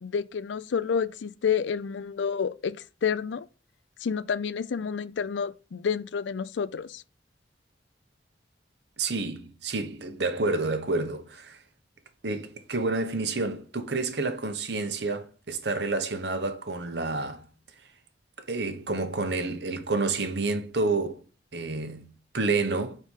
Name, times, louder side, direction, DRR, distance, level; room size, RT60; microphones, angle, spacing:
voice 1, 0.0-3.5 4.0-7.0, left 6 dB, 90° left, 0.4 m, -29 dB
voice 2, 9.0-11.6 12.2-17.5 18.5-21.2 21.5-23.0, right 3 dB, 65° right, 1.0 m, -29 dB
4.9 x 4.3 x 5.4 m
head